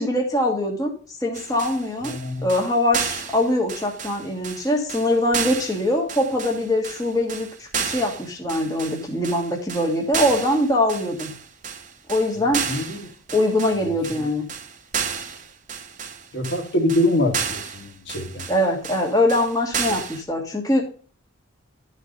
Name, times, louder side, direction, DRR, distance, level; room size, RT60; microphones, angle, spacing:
voice 1, 0.0-11.4 12.1-12.7 13.3-14.5 18.5-20.8, left 1 dB, 15° left, 0 dB, 1.5 m, -23 dB
sound 1, 1.3-20.2, right 7 dB, 35° right, 0.8 m, -32 dB
voice 2, 2.0-2.5 12.6-13.1 14.1-14.2 16.3-18.5, left 1 dB, 55° left, 2 dB, 1.6 m, -24 dB
11.5 x 4.2 x 5.1 m, 0.41 s
head